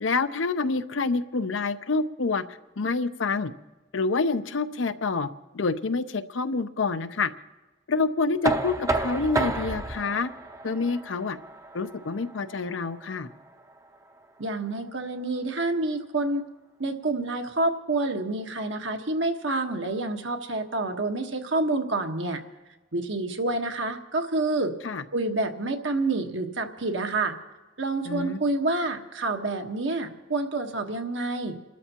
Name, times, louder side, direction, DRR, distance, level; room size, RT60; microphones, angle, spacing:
voice 1, 0.0-3.5 3.9-5.3 5.5-7.3 7.9-10.3 10.6-11.4 11.7-13.3 24.8-25.0 28.0-28.4, left 4 dB, 85° left, 11 dB, 0.7 m, -27 dB
Knock, 8.4-14.2, right 2 dB, 15° right, 0.6 m, -31 dB
voice 2, 14.4-16.4 16.8-22.4 22.9-24.7 25.1-27.4 27.8-31.6, right 2 dB, 80° right, 4 dB, 1.4 m, -28 dB
30.0 x 12.5 x 3.0 m, 1.1 s
head